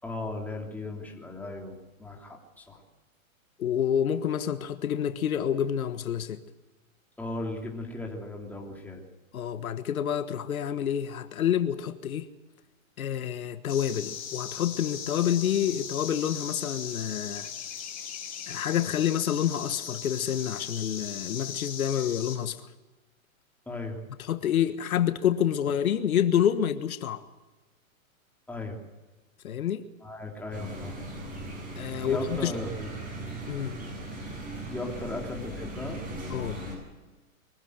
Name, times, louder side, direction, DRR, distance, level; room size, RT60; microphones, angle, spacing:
voice 1, 0.0-2.8 7.2-9.0 23.7-24.0 28.5-28.8 30.0-31.1 32.0-33.0 34.7-36.0, left 2 dB, 5° left, 3.1 m, -37 dB
voice 2, 3.6-6.4 9.3-12.3 13.0-17.5 18.5-22.7 24.3-27.2 29.4-29.8 31.8-32.5 33.5-33.8 36.3-36.6, left 9 dB, 80° left, 1.5 m, -28 dB
sound 1, 13.7-22.4, left 8 dB, 20° left, 3.8 m, -38 dB
sound 2, 30.5-36.8, right 1 dB, 20° right, 8.0 m, -38 dB
23.5 x 15.0 x 8.0 m
hypercardioid pair, 145°, 42 cm